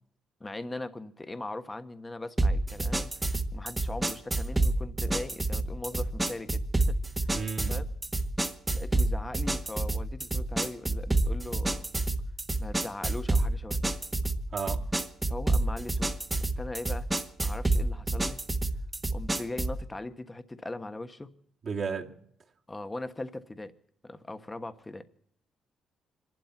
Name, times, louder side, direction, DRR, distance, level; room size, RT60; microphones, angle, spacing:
voice 1, 0.4-7.3 7.7-7.8 8.7-11.9 12.6-13.9 15.3-16.1 16.4-17.1 17.4-18.4 19.1-21.3 22.7-23.7 24.0-25.0, left 2 dB, 20° left, 1.3 m, -40 dB
sound 1, 2.4-19.8, right 2 dB, 15° right, 1.4 m, -29 dB
voice 2, 7.3-7.9 14.5-14.9 21.6-22.2, right 5 dB, 50° right, 2.3 m, -33 dB
26.0 x 12.0 x 4.5 m
cardioid pair, 90°, 0 cm